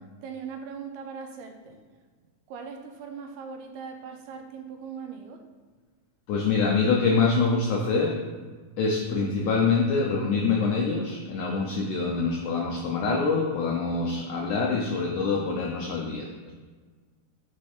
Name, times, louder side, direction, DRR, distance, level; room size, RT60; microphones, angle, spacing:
voice 1, 0.2-1.8 2.5-5.4 9.1-9.4, right 6 dB, 80° right, 4 dB, 2.6 m, -39 dB
voice 2, 6.3-8.3 8.8-16.5, left 4 dB, 80° left, -1 dB, 1.8 m, -25 dB
6.2 x 4.9 x 4.3 m, 1.4 s
omnidirectional pair, 4.5 m